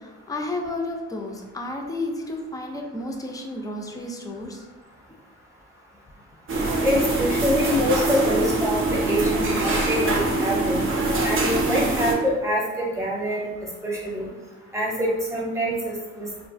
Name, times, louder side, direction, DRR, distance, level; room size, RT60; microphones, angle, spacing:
voice 1, 0.0-4.7, left 2 dB, 15° left, 2 dB, 0.3 m, -32 dB
sound 1, 6.5-12.1, right 2 dB, 45° right, 0.5 m, -23 dB
voice 2, 6.8-10.8 11.2-13.5 13.8-14.3 14.7-15.7 16.2-16.3, equal, 10° right, -4 dB, 0.7 m, -25 dB
2.4 x 2.2 x 2.4 m, 1.2 s
cardioid pair, 90°, 30 cm